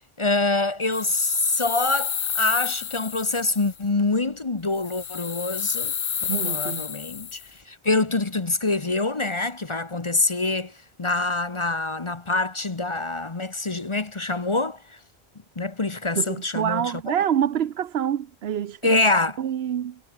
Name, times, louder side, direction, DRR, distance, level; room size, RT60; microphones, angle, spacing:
voice 1, 0.2-5.9 6.4-10.7 11.0-15.0 15.6-17.1 18.8-19.4, left 2 dB, 30° left, 1.1 m, -25 dB
sound 1, 0.9-3.8 4.8-7.5, left 8 dB, 45° left, 0.7 m, -30 dB
voice 2, 6.3-6.9 16.2-19.0 19.4-20.0, right 9 dB, 75° right, 1.0 m, -26 dB
omnidirectional pair, 1.1 m